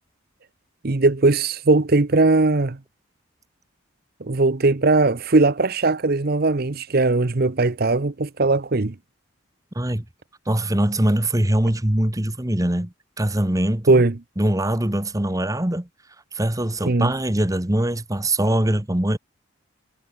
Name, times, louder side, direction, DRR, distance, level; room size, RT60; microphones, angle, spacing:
voice 1, 0.8-2.8 4.2-8.9 13.9-14.1 16.9-17.1, right 3 dB, 45° right, 0.8 m, -19 dB
voice 2, 9.7-10.0 10.5-14.0 14.4-15.9 16.3-19.2, right 1 dB, 15° right, 1.3 m, -22 dB
head